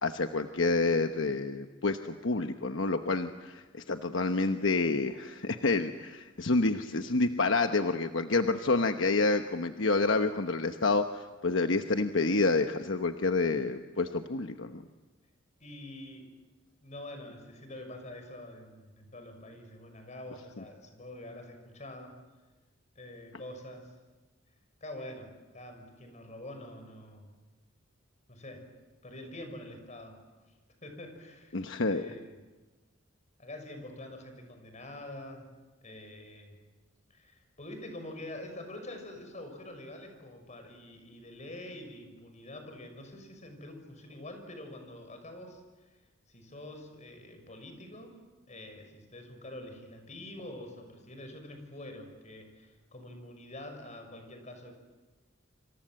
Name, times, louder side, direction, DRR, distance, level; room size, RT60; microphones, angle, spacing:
voice 1, 0.0-14.8 31.5-32.1, left 3 dB, 70° left, 7 dB, 1.1 m, -28 dB
voice 2, 15.6-16.3 16.8-22.1 22.9-23.9 24.8-27.3 28.3-28.7 29.0-30.2 30.8-31.6 31.9-32.3 33.4-35.5 35.8-36.6 37.1-45.6 46.3-48.2 48.5-54.8, left 1 dB, 35° left, 5 dB, 6.3 m, -46 dB
27.0 x 27.0 x 7.7 m, 1.2 s
head